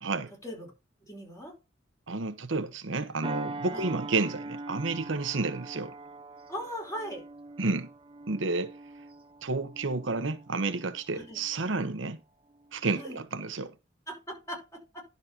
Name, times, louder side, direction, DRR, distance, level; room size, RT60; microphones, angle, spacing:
voice 1, 0.0-0.3 2.1-5.9 7.6-7.9 8.3-8.7 9.4-12.2 12.7-13.7, right 3 dB, 85° right, 1.0 m, -30 dB
voice 2, 1.0-1.5 3.7-3.9 6.5-7.2 11.1-11.4 13.0-13.2 14.1-14.8, equal, 15° left, 5.2 m, -39 dB
sound 1, 3.2-12.1 12.5-12.8, right 3 dB, 30° right, 0.8 m, -43 dB
11.0 x 4.2 x 5.8 m
head